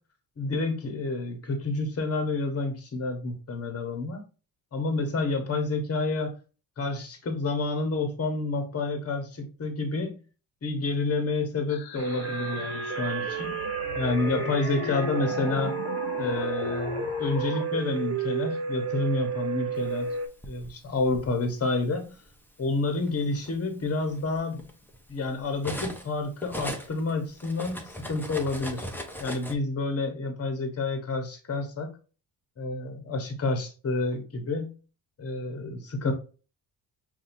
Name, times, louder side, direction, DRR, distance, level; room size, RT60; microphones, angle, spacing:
voice 1, 0.4-4.2 4.7-6.3 6.8-10.2 10.6-13.6 13.9-15.7 16.2-20.1 20.5-22.2 22.6-24.6 25.1-28.9 29.2-31.9 32.6-34.8 35.2-36.1, left 3 dB, 35° left, 1.2 m, -29 dB
sound 1, 11.7-17.7, left 8 dB, 60° left, 0.7 m, -39 dB
sound 2, 12.0-20.3, right 6 dB, 35° right, 0.8 m, -32 dB
Cutlery silverware, 20.0-21.3 22.3-22.5 22.9-26.1 26.4-29.5, equal, 5° left, 0.7 m, -39 dB
5.5 x 2.7 x 2.6 m
cardioid pair, 95°, 42 cm